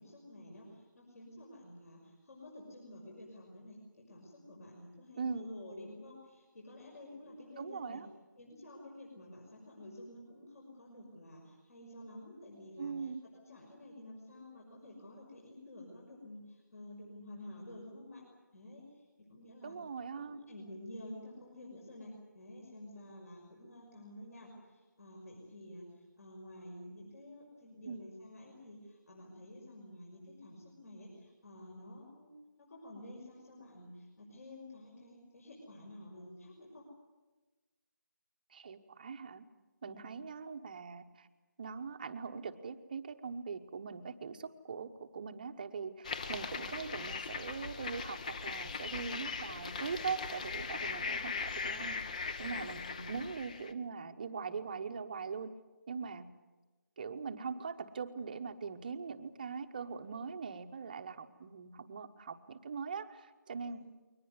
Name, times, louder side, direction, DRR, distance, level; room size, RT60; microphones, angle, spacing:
voice 1, 0.0-8.0 8.4-18.3 18.5-19.0 19.3-19.8 20.2-36.8 39.8-40.1 52.8-53.1 63.7-63.8, left 1 dB, 50° left, -1 dB, 6.0 m, -51 dB
voice 2, 5.2-5.5 7.6-8.1 12.8-13.2 19.6-20.4 27.9-28.0 38.5-39.4 39.8-41.3 41.6-55.5 55.9-56.3 57.0-63.8, right 5 dB, 25° right, 9 dB, 1.0 m, -41 dB
sound 1, 46.0-53.7, left 5 dB, 25° left, 0.8 m, -39 dB
22.5 x 19.5 x 9.6 m, 1.2 s
figure-of-eight pair, 165°, 10 cm